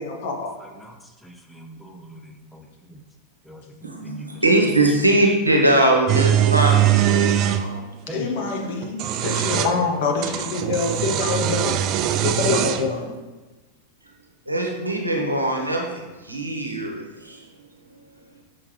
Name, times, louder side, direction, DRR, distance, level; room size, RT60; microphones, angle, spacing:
voice 1, 0.0-0.5 8.1-11.8 12.2-13.1, left 4 dB, 50° left, 3 dB, 1.0 m, -25 dB
voice 2, 0.6-1.0 1.2-3.0 3.4-4.4 8.1-8.3 9.0-9.7 10.0-10.6, right 1 dB, 5° left, 3 dB, 0.6 m, -41 dB
voice 3, 3.8-7.9 14.5-17.4, right 1 dB, 85° right, 0 dB, 1.0 m, -21 dB
sound 1, 6.1-7.6 8.8-9.7 10.2-12.9, right 11 dB, 35° right, 0.3 m, -21 dB
6.3 x 5.8 x 3.1 m, 1.2 s
figure-of-eight pair, 90°, 0 cm